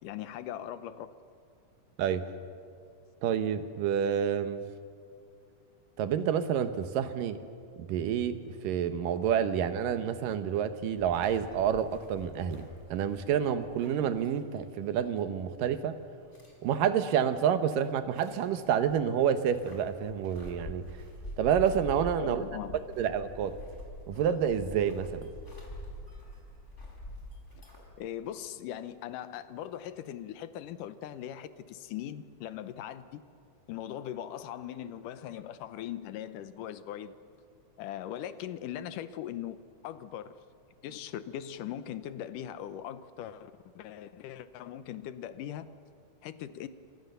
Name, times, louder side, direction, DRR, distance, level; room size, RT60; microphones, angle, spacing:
voice 1, 0.0-1.1 22.2-22.8 28.0-33.2 33.7-37.1 37.8-39.6 39.8-40.3 40.8-45.7 46.2-46.7, left 11 dB, 80° left, 13 dB, 2.4 m, -40 dB
voice 2, 3.2-4.6 6.0-7.4 7.9-8.4 8.6-12.7 12.9-15.9 16.6-20.8 21.4-22.4 23.0-23.5 24.1-25.2, right 8 dB, 85° right, 10 dB, 2.8 m, -28 dB
sound 1, 11.0-14.6 14.9-15.0 16.3-16.5 18.1-18.5 18.8-27.9, equal, 20° left, 5.0 m, -45 dB
28.5 x 25.5 x 6.8 m, 2.3 s
omnidirectional pair, 3.8 m